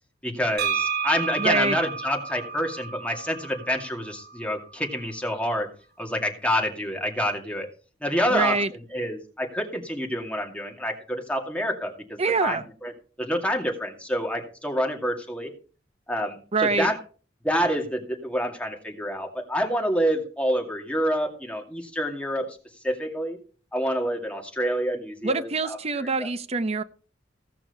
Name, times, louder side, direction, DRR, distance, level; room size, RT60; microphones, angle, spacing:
voice 1, 0.2-5.7 6.0-7.7 8.0-8.6 8.9-12.9 13.2-15.5 16.1-17.0 17.4-22.5 22.8-23.4 23.7-26.3, equal, 5° left, 1 dB, 2.3 m, -27 dB
sound 1, 0.6-4.4, right 6 dB, 60° right, 1.6 m, -31 dB
voice 2, 1.4-1.8 8.3-8.7 12.2-12.6 16.5-16.9 25.2-26.8, right 4 dB, 35° right, 10 dB, 0.7 m, -25 dB
16.5 x 5.9 x 5.5 m, 0.39 s
head